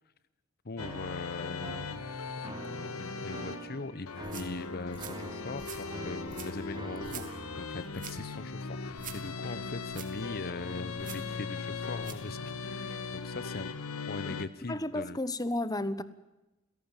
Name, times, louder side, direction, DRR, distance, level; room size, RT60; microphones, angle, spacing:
voice 1, 0.6-2.1 2.4-13.7 14.1-15.2, left 3 dB, 45° left, 0.9 m, -41 dB
sound 1, 0.8-14.5, left 4 dB, 85° left, 1.6 m, -39 dB
sound 2, 0.8-7.6, right 2 dB, 20° right, 1.2 m, -46 dB
sound 3, 4.1-12.3, right 8 dB, 40° right, 3.2 m, -49 dB
voice 2, 14.7-16.0, left 1 dB, 20° left, 1.1 m, -32 dB
29.0 x 17.5 x 9.0 m
head